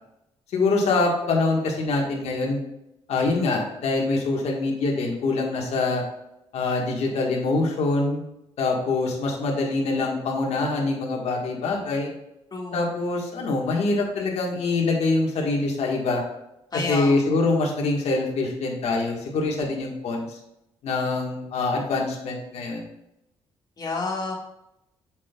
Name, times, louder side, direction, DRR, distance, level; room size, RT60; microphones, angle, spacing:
voice 1, 0.5-2.6 3.1-6.0 6.5-8.2 8.6-12.1 12.7-16.2 16.7-20.4 20.8-22.9, left 3 dB, 70° left, 0 dB, 1.6 m, -24 dB
voice 2, 12.5-12.9 16.7-17.2 23.8-24.3, left 3 dB, 35° left, -2 dB, 1.9 m, -29 dB
7.3 x 6.2 x 2.4 m, 0.86 s
cardioid pair, 95°, 11 cm